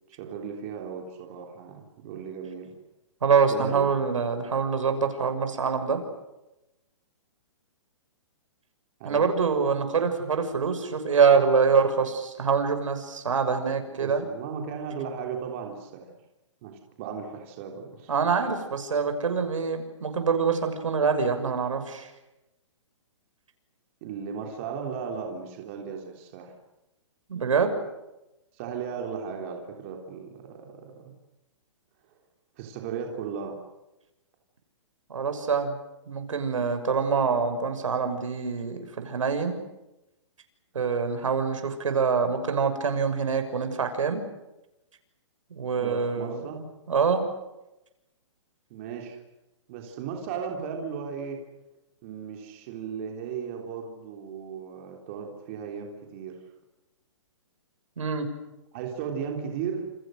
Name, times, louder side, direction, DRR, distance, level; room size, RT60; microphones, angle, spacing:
voice 1, 0.1-2.7 3.5-4.6 9.0-9.3 13.9-16.2 16.6-18.1 24.0-26.5 28.5-31.2 32.6-33.6 45.7-46.6 48.7-49.2 49.7-51.4 52.0-56.4 58.7-59.9, right 6 dB, 25° right, 2 dB, 3.5 m, -36 dB
voice 2, 3.2-6.0 9.0-14.3 18.1-22.1 27.3-27.7 35.1-35.8 36.1-39.6 40.7-44.2 45.5-47.2 58.0-58.3, right 5 dB, 90° right, 8 dB, 6.6 m, -25 dB
29.0 x 29.0 x 6.5 m, 0.96 s
hypercardioid pair, 175°, 16 cm